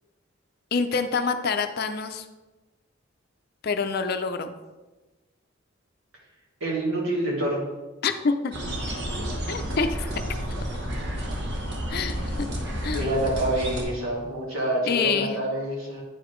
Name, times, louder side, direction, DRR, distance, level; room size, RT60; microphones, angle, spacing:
voice 1, 0.7-2.3 3.6-4.5 8.0-8.5 9.5-10.1 11.9-12.5 12.8-13.1 14.8-15.4, left 5 dB, 50° left, 8 dB, 0.4 m, -26 dB
voice 2, 6.6-7.6 12.9-16.0, right 1 dB, 80° right, -4 dB, 2.2 m, -27 dB
sound 1, 8.5-13.8, equal, 55° right, 1.1 m, -30 dB
8.7 x 4.9 x 3.1 m, 1.2 s
head